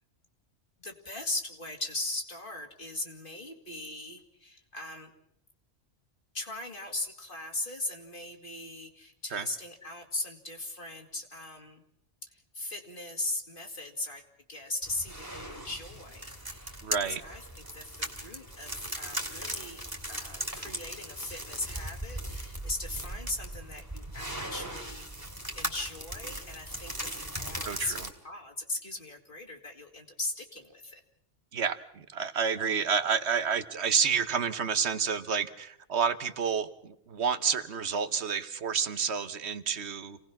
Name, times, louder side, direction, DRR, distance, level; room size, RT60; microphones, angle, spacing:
voice 1, 0.8-5.1 6.3-11.8 12.3-14.2 14.5-17.4 17.7-25.1 25.5-28.0 28.2-31.0, left 2 dB, 45° left, 3 dB, 2.4 m, -39 dB
sound 1, 14.8-28.1, right 1 dB, 20° right, 2.5 m, -38 dB
voice 2, 16.8-17.2 27.6-28.1 31.5-40.2, right 6 dB, 65° right, 11 dB, 1.3 m, -29 dB
27.5 x 18.0 x 6.0 m, 0.75 s
omnidirectional pair, 1.2 m